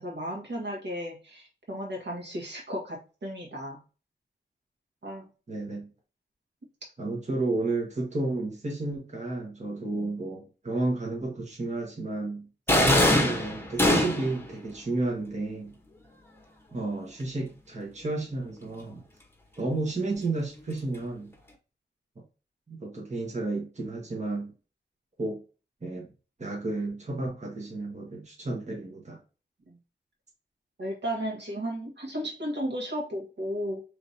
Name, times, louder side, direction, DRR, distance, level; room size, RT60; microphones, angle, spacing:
voice 1, 0.0-3.8 5.0-5.3 9.9-10.1 29.7-29.8 30.8-33.8, equal, 70° right, -1 dB, 1.8 m, -34 dB
voice 2, 5.5-5.9 7.0-12.5 12.8-15.7 16.7-19.0 19.6-21.3 22.7-24.5 25.2-25.4 25.8-26.1 26.4-29.2, right 2 dB, 40° right, -1 dB, 1.4 m, -32 dB
sound 1, 12.7-14.4, left 1 dB, 10° left, 1.0 m, -22 dB
5.0 x 3.4 x 2.7 m, 0.34 s
wide cardioid pair, 110°, 19 cm